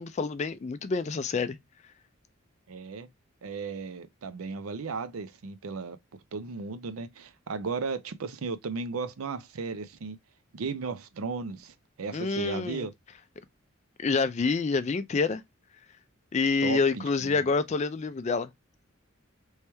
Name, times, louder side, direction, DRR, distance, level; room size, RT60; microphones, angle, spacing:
voice 1, 0.0-1.6 12.1-12.9 14.0-15.4 16.3-18.5, left 4 dB, 30° left, 0.3 m, -27 dB
voice 2, 2.7-3.1 3.4-6.0 6.3-10.2 10.5-12.9 16.6-17.5, right 4 dB, 80° right, 0.5 m, -35 dB
3.1 x 3.0 x 3.3 m
head